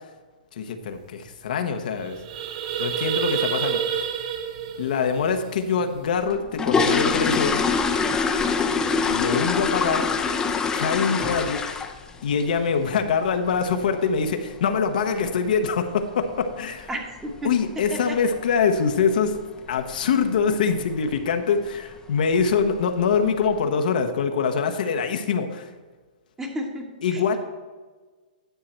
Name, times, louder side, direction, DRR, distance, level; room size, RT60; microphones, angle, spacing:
voice 1, 0.5-2.2 2.8-4.0 4.8-7.6 9.0-10.1 10.7-11.6 12.2-16.9 17.4-19.4 19.7-25.7 27.0-27.4, left 6 dB, 65° left, 6 dB, 0.9 m, -24 dB
sound 1, 0.9-1.0 1.3-1.5 1.9-6.2, right 8 dB, 45° right, 0.7 m, -29 dB
sound 2, 6.2-12.1 12.4-12.7 13.0-13.1 13.5-13.6 14.0-14.2 14.5-14.6 15.2-15.3 15.5-15.7 16.2-16.5 16.8-16.9 17.3-17.5 17.8-17.9 18.3-18.4 19.1-19.4 19.7-20.0 20.4-20.5 20.9-21.0 21.8-21.9 22.3-22.8 23.3-23.4, left 5 dB, 15° left, 0.6 m, -24 dB
voice 2, 16.9-17.5 18.1-18.2 26.4-27.4, equal, 10° right, 2 dB, 1.2 m, -32 dB
10.5 x 5.7 x 4.4 m, 1.4 s
hypercardioid pair, 140°, 5 cm